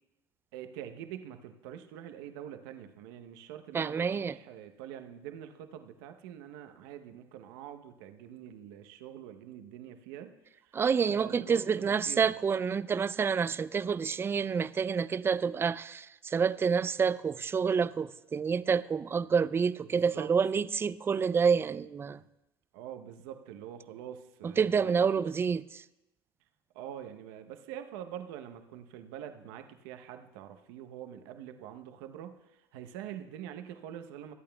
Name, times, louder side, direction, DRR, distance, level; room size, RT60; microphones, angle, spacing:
voice 1, 0.5-10.3 10.6-10.8 11.1-12.3 19.9-20.3 22.7-25.3 26.7-34.3, right 10 dB, 70° right, 0.9 m, -45 dB
voice 2, 3.7-4.4 10.7-22.2 24.4-25.8, right 6 dB, 20° right, 0.3 m, -28 dB
23.5 x 8.5 x 2.3 m
hypercardioid pair, 90°, 12 cm